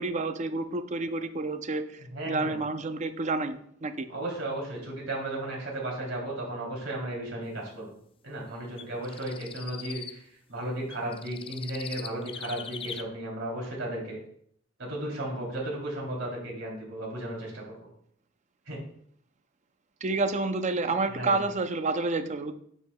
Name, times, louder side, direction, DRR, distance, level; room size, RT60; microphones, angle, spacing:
voice 1, 0.0-4.1 20.0-22.5, right 3 dB, 35° right, 9 dB, 0.5 m, -29 dB
voice 2, 2.1-2.5 4.1-7.9 8.2-14.2 14.9-17.9 18.7-18.8 21.1-21.4, right 1 dB, 75° right, -2 dB, 3.1 m, -35 dB
sound 1, 8.8-10.1 10.9-13.0, left 7 dB, 30° left, 0.4 m, -41 dB
9.7 x 6.6 x 2.3 m, 0.66 s
head